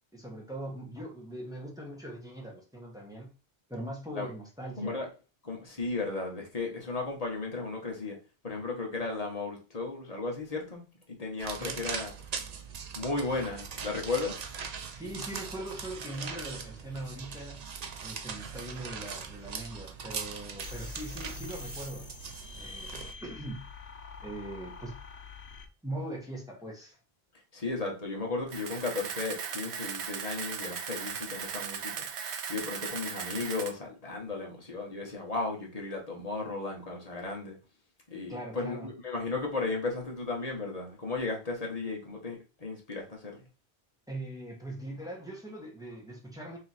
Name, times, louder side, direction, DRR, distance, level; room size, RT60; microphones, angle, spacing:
voice 1, 0.1-3.3 3.7-5.0 11.6-11.9 14.9-17.6 18.0-22.1 22.5-22.9 23.2-23.6 24.2-25.0 25.8-27.0 38.3-38.9 44.1-46.6, right 1 dB, 5° right, 1.1 m, -41 dB
voice 2, 4.8-5.1 5.4-8.2 8.4-12.1 12.9-14.4 27.5-32.0 32.5-37.6 38.1-43.4, left 3 dB, 35° left, 1.2 m, -35 dB
sound 1, 11.4-23.1, right 6 dB, 50° right, 0.6 m, -40 dB
sound 2, 20.6-25.7, left 4 dB, 80° left, 1.0 m, -45 dB
Camera, 28.5-33.7, right 7 dB, 85° right, 0.9 m, -37 dB
3.1 x 3.0 x 4.1 m
omnidirectional pair, 1.1 m